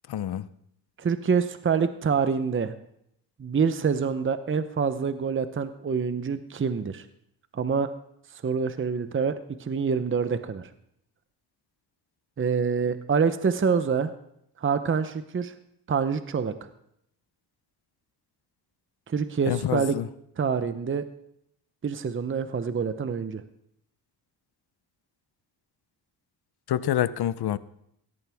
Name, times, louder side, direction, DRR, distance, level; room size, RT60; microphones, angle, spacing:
voice 1, 0.1-0.5 19.4-20.1 26.7-27.6, left 11 dB, 65° left, 17 dB, 0.7 m, -27 dB
voice 2, 1.0-2.7 3.4-7.0 7.5-7.9 8.3-9.3 9.6-10.7 12.4-14.1 14.6-15.5 15.9-16.5 19.1-20.0 20.4-21.0 21.8-23.4, right 6 dB, 30° right, 11 dB, 0.8 m, -26 dB
17.0 x 13.5 x 3.5 m, 0.75 s
cardioid pair, 90°, 42 cm